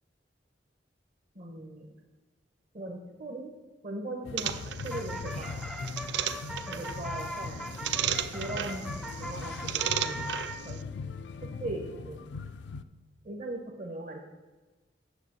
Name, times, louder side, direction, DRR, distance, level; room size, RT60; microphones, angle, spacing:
voice 1, 1.3-1.9 2.7-3.5 3.8-4.5 4.8-5.5 6.7-7.6 8.3-10.2 10.6-10.8 11.6-12.2 13.2-14.2, right 2 dB, 45° right, 0 dB, 0.9 m, -39 dB
sound 1, 4.2-12.8, left 4 dB, 75° left, 0.4 m, -40 dB
sound 2, 4.4-10.6, equal, ahead, 0.4 m, -40 dB
sound 3, 4.4-10.8, right 10 dB, 75° right, 0.4 m, -35 dB
9.1 x 6.4 x 4.3 m, 1.2 s
head